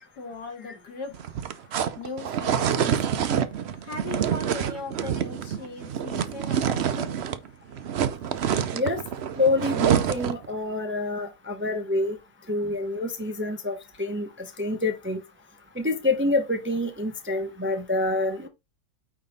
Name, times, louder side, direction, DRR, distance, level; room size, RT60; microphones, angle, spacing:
voice 1, 0.2-1.2 2.0-3.3 3.8-7.2, left 3 dB, 90° left, 2.5 m, -38 dB
sound 1, 1.1-7.5 7.7-10.5, right 8 dB, 60° right, 0.7 m, -27 dB
voice 2, 9.4-12.2 12.5-14.3 14.6-15.2 15.8-18.5, left 2 dB, 10° right, 0.6 m, -27 dB
9.0 x 3.5 x 4.0 m
omnidirectional pair, 1.7 m